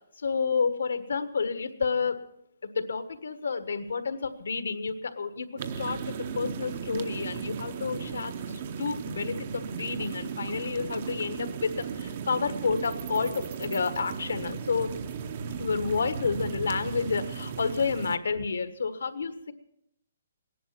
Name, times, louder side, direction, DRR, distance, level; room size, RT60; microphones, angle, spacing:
voice 1, 0.2-2.2 2.7-14.9 15.6-19.5, left 5 dB, 85° left, 10 dB, 1.4 m, -30 dB
sound 1, 5.6-18.2, right 6 dB, 35° right, 0.7 m, -36 dB
17.0 x 11.0 x 5.9 m, 0.75 s
hypercardioid pair, 170°, 0 cm